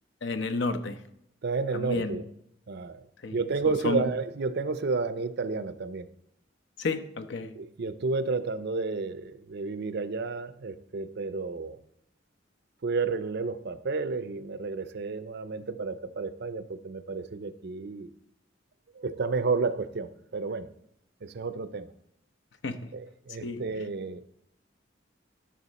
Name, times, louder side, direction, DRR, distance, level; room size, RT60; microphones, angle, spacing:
voice 1, 0.2-1.0 1.7-2.2 3.2-3.4 3.6-4.1 6.8-7.6 22.6-22.9 23.4-23.6, left 3 dB, 65° left, 9 dB, 0.8 m, -31 dB
voice 2, 1.4-2.2 2.7-3.0 3.3-6.1 7.6-11.8 12.8-18.1 18.9-20.7 21.2-21.9 22.9-24.2, right 4 dB, 60° right, 14 dB, 0.5 m, -31 dB
11.0 x 6.3 x 4.1 m, 0.76 s
head